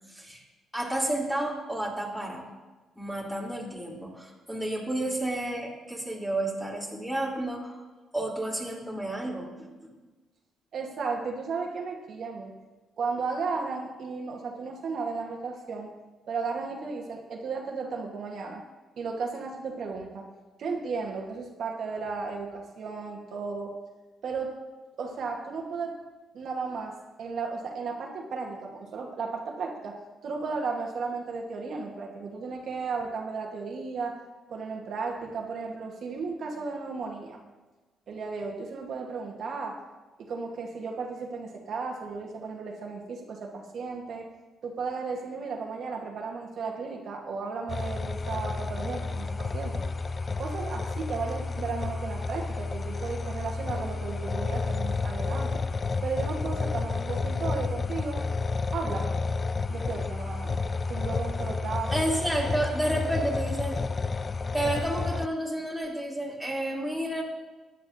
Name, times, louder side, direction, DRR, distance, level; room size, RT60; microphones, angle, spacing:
voice 1, 0.1-0.4 0.7-2.4 2.9-7.8 8.1-10.0 61.9-67.2, right 1 dB, 5° left, -4 dB, 3.1 m, -31 dB
voice 2, 10.7-12.5 13.0-15.9 16.3-18.6 19.0-20.3 20.6-23.7 24.2-24.5 25.0-26.0 26.3-34.2 34.5-37.4 38.1-39.8 40.2-44.3 44.6-49.8 50.4-55.6 56.0-58.2 58.7-59.1 59.7-60.6 60.9-61.9, right 4 dB, 60° right, 1 dB, 1.3 m, -34 dB
sound 1, 47.7-65.3, left 4 dB, 35° left, 0.3 m, -31 dB
14.5 x 10.0 x 2.7 m, 1.2 s
cardioid pair, 90°, 0 cm